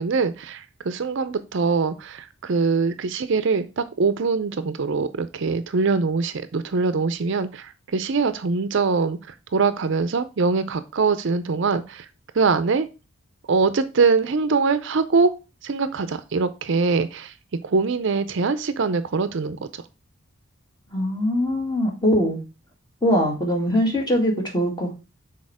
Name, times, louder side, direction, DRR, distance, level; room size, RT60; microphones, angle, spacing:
voice 1, 0.0-9.2 9.5-12.1 12.3-12.9 13.5-15.3 15.6-17.3 17.6-19.8, right 4 dB, 55° right, 12 dB, 0.5 m, -23 dB
voice 2, 20.9-22.4 23.0-24.9, equal, 20° left, 0 dB, 2.0 m, -22 dB
6.4 x 4.2 x 4.8 m, 0.30 s
head